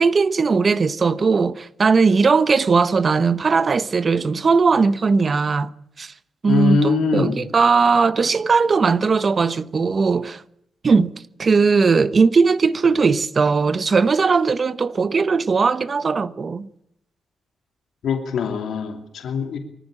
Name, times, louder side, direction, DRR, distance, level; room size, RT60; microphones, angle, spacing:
voice 1, 0.0-5.7 6.0-6.1 6.4-10.4 10.8-11.1 11.4-16.7, right 4 dB, 40° right, 0.9 m, -18 dB
voice 2, 6.5-7.4 18.0-19.6, left 5 dB, 80° left, 2.7 m, -22 dB
24.0 x 14.0 x 8.7 m
cardioid pair, 110°, 0 cm